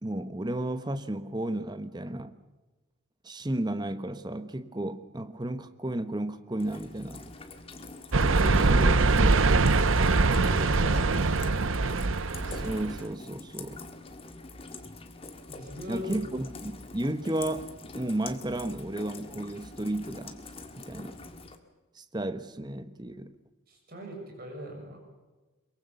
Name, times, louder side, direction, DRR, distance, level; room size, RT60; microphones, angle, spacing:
voice 1, 0.0-2.3 3.2-7.2 8.2-9.7 12.5-13.8 15.9-20.4 20.8-21.2 21.9-23.3, right 1 dB, 20° right, 1.0 m, -33 dB
Rain, 6.6-21.6, left 3 dB, 25° left, 1.7 m, -45 dB
sound 1, 8.1-13.0, right 3 dB, 70° right, 0.8 m, -23 dB
voice 2, 10.1-11.1 15.5-16.1 23.7-25.0, left 1 dB, 45° right, 6.7 m, -40 dB
23.0 x 23.0 x 7.0 m
head